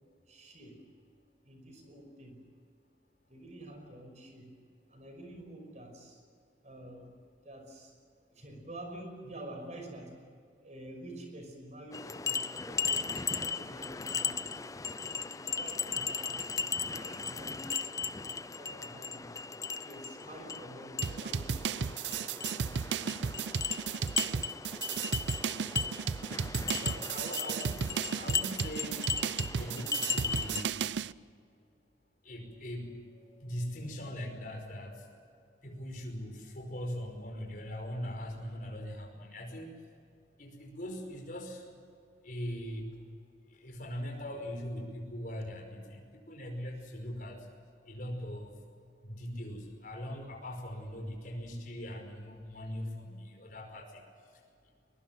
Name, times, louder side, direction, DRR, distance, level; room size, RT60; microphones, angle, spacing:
voice 1, 0.3-0.8 1.4-2.4 3.3-4.5 4.9-6.2 6.6-7.9 8.3-10.3 10.6-14.7 15.2-16.5 16.9-19.4 19.8-22.1, right 1 dB, 40° right, 4 dB, 5.6 m, -48 dB
sound 1, 11.9-30.6, left 5 dB, 20° left, 0.5 m, -36 dB
sound 2, 21.0-31.1, right 6 dB, 70° right, 0.5 m, -34 dB
voice 2, 26.8-29.1 29.6-30.9 32.2-39.7 40.4-41.7 42.2-42.9 43.5-47.5 47.9-48.5 49.0-54.4, equal, 45° left, 3 dB, 5.2 m, -41 dB
22.0 x 22.0 x 7.7 m, 2.3 s
head